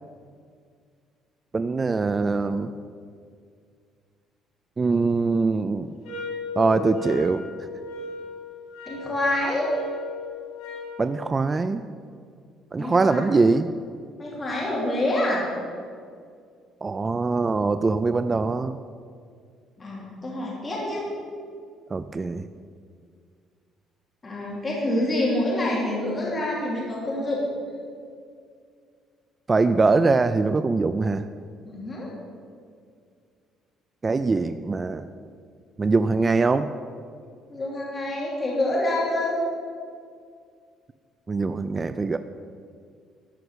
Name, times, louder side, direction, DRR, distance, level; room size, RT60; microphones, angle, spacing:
voice 1, 1.5-2.7 4.8-5.9 6.6-7.4 11.0-11.8 12.7-13.7 16.8-18.8 21.9-22.5 29.5-31.2 34.0-35.1 35.8-36.7 41.3-42.2, right 3 dB, 20° right, 10 dB, 0.3 m, -22 dB
sound 1, 6.0-11.0, left 3 dB, 90° left, 3.5 m, -36 dB
voice 2, 8.9-9.7 12.8-13.2 14.2-15.5 19.8-21.0 24.2-27.4 31.6-32.1 37.5-39.3, left 1 dB, 20° left, -4 dB, 2.9 m, -27 dB
13.0 x 5.9 x 8.0 m, 2.2 s
cardioid pair, 140°, 0 cm